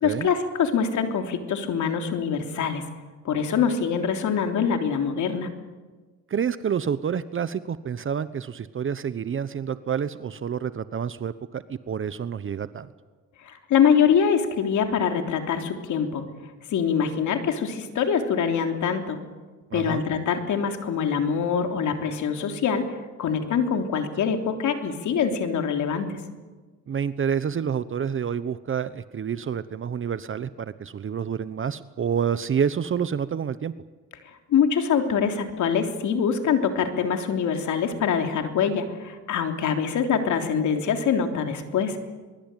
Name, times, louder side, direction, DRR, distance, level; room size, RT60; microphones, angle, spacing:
voice 1, 0.0-2.8 3.2-5.5 13.7-16.2 16.7-19.2 19.7-22.9 23.2-26.2 34.5-42.0, left 7 dB, 75° left, 5 dB, 3.4 m, -24 dB
voice 2, 6.3-12.9 19.7-20.0 26.9-33.7, right 7 dB, 45° right, 14 dB, 1.0 m, -28 dB
23.0 x 22.5 x 9.2 m, 1.3 s
cardioid pair, 90°, 30 cm